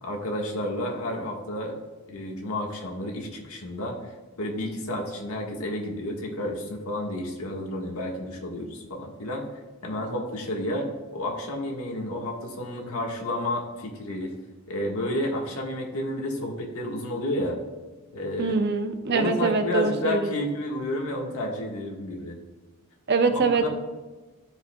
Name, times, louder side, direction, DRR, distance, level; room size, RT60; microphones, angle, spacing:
voice 1, 0.0-1.7 2.1-4.1 4.4-9.4 9.8-14.3 14.7-17.6 18.1-18.6 19.1-22.4 23.3-23.7, left 1 dB, 70° left, 0 dB, 1.5 m, -31 dB
voice 2, 18.4-20.3 23.1-23.7, right 4 dB, 50° right, 7 dB, 0.6 m, -23 dB
13.5 x 5.1 x 2.3 m, 1.2 s
head